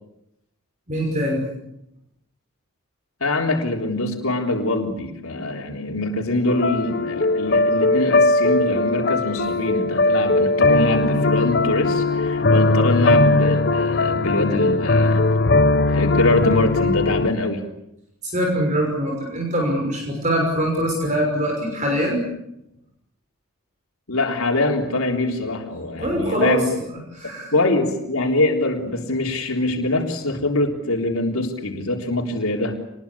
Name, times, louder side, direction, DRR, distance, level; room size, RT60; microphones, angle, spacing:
voice 1, 0.9-1.4 18.2-22.3 26.0-26.6 27.1-27.5, equal, 35° right, 1 dB, 6.1 m, -23 dB
voice 2, 3.2-15.3 15.9-17.7 24.1-26.7 27.2-32.8, left 2 dB, 80° left, 1 dB, 3.7 m, -23 dB
sound 1, 6.5-17.3, left 2 dB, 50° left, 0.9 m, -19 dB
27.5 x 21.0 x 8.6 m, 0.82 s
head